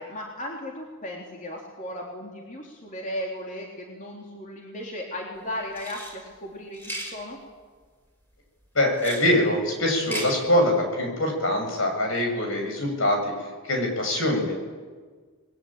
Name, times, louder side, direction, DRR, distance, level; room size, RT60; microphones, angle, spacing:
voice 1, 0.0-7.4, left 1 dB, 40° left, -1 dB, 3.5 m, -36 dB
sound 1, 5.7-6.1 6.7-7.1 8.9-9.3 9.9-10.3, equal, 10° left, 6.0 m, -35 dB
voice 2, 8.7-13.3 13.7-14.5, left 1 dB, 70° left, 3 dB, 7.5 m, -23 dB
29.5 x 21.5 x 8.9 m, 1.5 s
head